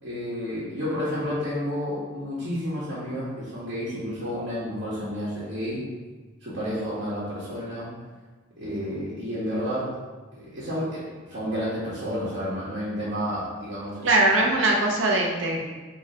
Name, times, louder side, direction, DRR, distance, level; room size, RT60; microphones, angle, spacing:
voice 1, 0.0-5.8 6.4-7.9 8.6-9.9 10.4-14.1, equal, 70° right, -10 dB, 1.3 m, -30 dB
voice 2, 14.0-15.6, right 2 dB, 85° right, -1 dB, 0.8 m, -21 dB
3.7 x 3.0 x 4.3 m, 1.3 s
head